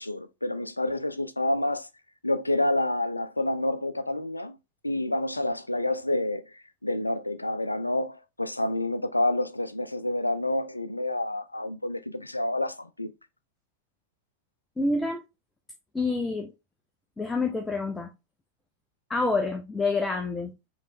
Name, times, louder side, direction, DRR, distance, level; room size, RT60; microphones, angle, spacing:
voice 1, 0.0-1.9 2.2-4.5 4.8-13.1, left 1 dB, 85° left, 0.4 m, -28 dB
voice 2, 14.8-15.2 15.9-16.5 17.2-18.1 19.1-20.5, left 3 dB, 10° left, 0.6 m, -27 dB
5.0 x 3.2 x 2.7 m
figure-of-eight pair, 90°, 0 cm